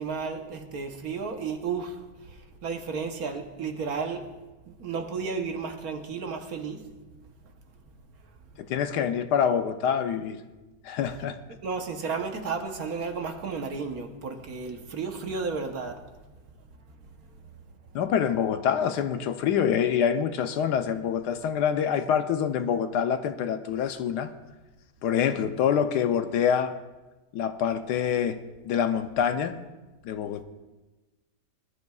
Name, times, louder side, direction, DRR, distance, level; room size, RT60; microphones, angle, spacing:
voice 1, 0.0-4.3 4.7-6.8 11.6-16.0, right 5 dB, 60° right, 5 dB, 1.4 m, -33 dB
voice 2, 8.6-10.4 10.8-11.4 17.9-24.3 25.0-26.7 27.3-28.4 28.6-29.6 30.0-30.4, left 8 dB, 75° left, 9 dB, 1.2 m, -26 dB
20.0 x 12.0 x 2.3 m, 1.1 s
omnidirectional pair, 1.9 m